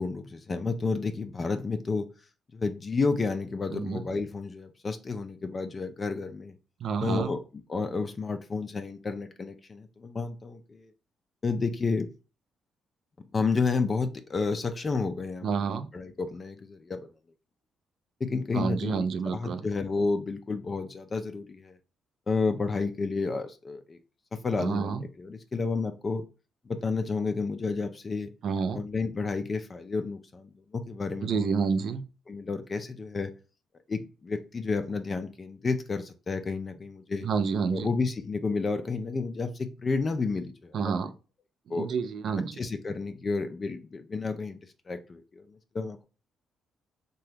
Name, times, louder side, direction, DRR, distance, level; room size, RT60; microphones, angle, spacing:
voice 1, 0.0-2.1 2.5-6.5 7.0-7.4 7.7-10.9 11.4-12.1 13.2-17.1 18.2-21.8 22.3-24.0 24.3-26.2 26.7-28.3 28.7-31.5 32.3-33.3 33.9-37.3 37.7-40.9 41.7-41.9 42.5-44.6 44.9-46.0, left 4 dB, 35° left, 8 dB, 0.4 m, -31 dB
voice 2, 3.7-4.0 6.8-7.3 15.4-15.9 18.5-19.6 24.6-25.0 28.4-28.8 31.2-32.0 37.2-37.9 40.7-41.1 41.7-42.6, right 5 dB, 65° right, 10 dB, 0.4 m, -29 dB
2.8 x 2.3 x 3.3 m, 0.33 s
cardioid pair, 90°, 0 cm